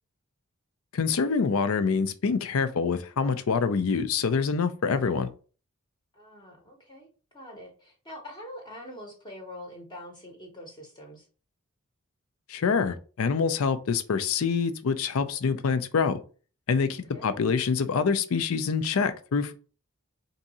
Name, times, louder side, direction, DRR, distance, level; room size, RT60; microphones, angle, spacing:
voice 1, 0.9-5.3 12.5-16.2 16.7-19.5, left 5 dB, 75° left, 0.5 m, -26 dB
voice 2, 6.1-7.1 7.3-11.3 16.9-17.3, left 1 dB, 20° left, 0.8 m, -44 dB
3.6 x 2.7 x 4.1 m
head